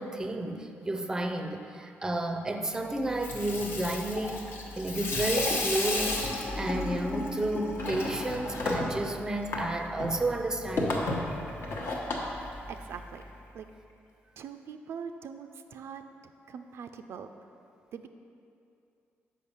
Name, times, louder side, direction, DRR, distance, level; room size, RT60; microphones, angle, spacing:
voice 1, 0.0-4.5 4.8-11.0, right 2 dB, 15° right, 5 dB, 0.5 m, -31 dB
Water tap faucet / Sink (filling or washing), 3.0-13.2, left 2 dB, 65° left, 1.0 m, -33 dB
voice 2, 12.4-13.2 13.5-13.7 14.4-17.3 17.9-18.1, right 7 dB, 70° right, 7 dB, 0.3 m, -43 dB
6.6 x 5.2 x 5.5 m, 2.6 s
cardioid pair, 125°, 5 cm